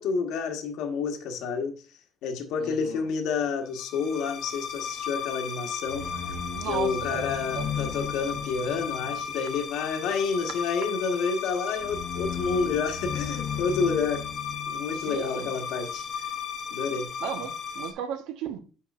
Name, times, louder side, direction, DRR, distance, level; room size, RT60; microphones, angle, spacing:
voice 1, 0.0-1.7 2.2-6.2 6.6-14.2 14.7-16.4 16.7-17.1, left 5 dB, 70° left, 1.3 m, -29 dB
voice 2, 2.6-3.1 6.5-7.3 7.5-7.7 10.4-10.5 14.9-15.5 17.2-18.6, right 8 dB, 85° right, 1.1 m, -35 dB
sound 1, 3.8-17.9, left 7 dB, 45° left, 0.8 m, -34 dB
8.7 x 6.0 x 2.5 m
cardioid pair, 155°, 0 cm